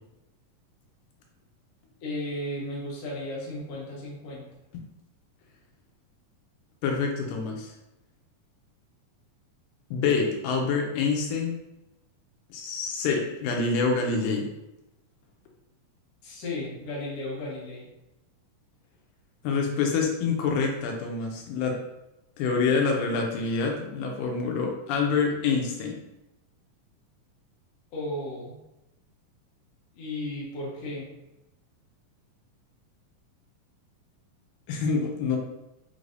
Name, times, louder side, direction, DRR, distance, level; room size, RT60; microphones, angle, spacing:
voice 1, 2.0-4.4 16.2-17.9 27.9-28.6 29.9-31.1, left 1 dB, 60° left, -5 dB, 1.7 m, -34 dB
voice 2, 6.8-7.7 9.9-11.6 12.5-14.5 19.4-21.8 22.4-26.0 34.7-35.4, left 4 dB, 85° left, 1 dB, 2.3 m, -26 dB
5.3 x 3.3 x 2.5 m, 0.94 s
omnidirectional pair, 3.9 m